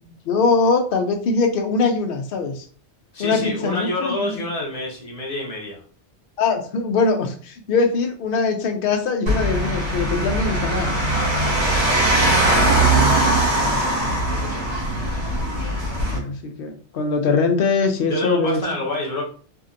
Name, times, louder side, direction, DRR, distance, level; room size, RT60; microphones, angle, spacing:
voice 1, 0.0-2.6 3.2-4.4 6.4-11.1 16.0-18.6, left 4 dB, 60° left, 5 dB, 0.7 m, -22 dB
voice 2, 3.1-5.8 12.4-12.8 13.0-13.3 14.2-14.7 18.0-19.2, left 2 dB, 35° left, -3 dB, 0.9 m, -28 dB
sound 1, 9.3-16.2, right 1 dB, 75° right, 1.4 m, -20 dB
2.8 x 2.6 x 2.5 m, 0.43 s
omnidirectional pair, 1.1 m